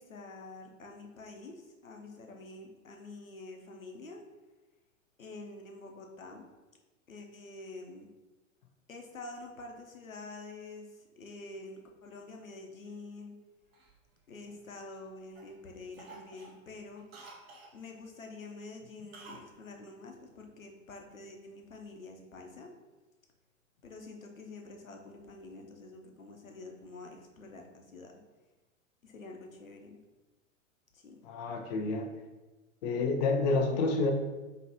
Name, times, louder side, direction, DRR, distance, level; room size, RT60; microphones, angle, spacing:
voice 1, 0.0-4.2 5.2-6.5 7.1-8.1 8.9-13.4 14.3-17.1 17.7-22.7 23.8-28.2 29.0-30.0 30.9-31.2, left 2 dB, 80° left, 2 dB, 0.8 m, -47 dB
Cough, 13.7-15.0 15.4-15.6 15.9-17.8 19.1-19.5 19.8-19.9, right 3 dB, 50° right, 1.0 m, -52 dB
voice 2, 31.2-32.1 32.8-34.1, left 3 dB, 35° left, 4 dB, 0.4 m, -29 dB
5.5 x 2.9 x 2.8 m, 1.2 s
figure-of-eight pair, 95°, 40 cm